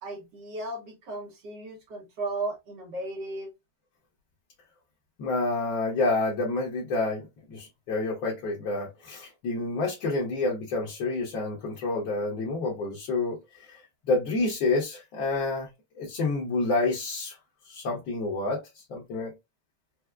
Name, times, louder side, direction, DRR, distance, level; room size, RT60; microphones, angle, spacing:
voice 1, 0.0-3.5, right 2 dB, 60° right, 1.5 m, -35 dB
voice 2, 5.2-13.8 14.1-15.7 16.0-17.4 17.7-18.6 18.9-19.3, left 3 dB, 70° left, 1.7 m, -28 dB
4.6 x 2.0 x 2.3 m
omnidirectional pair, 2.2 m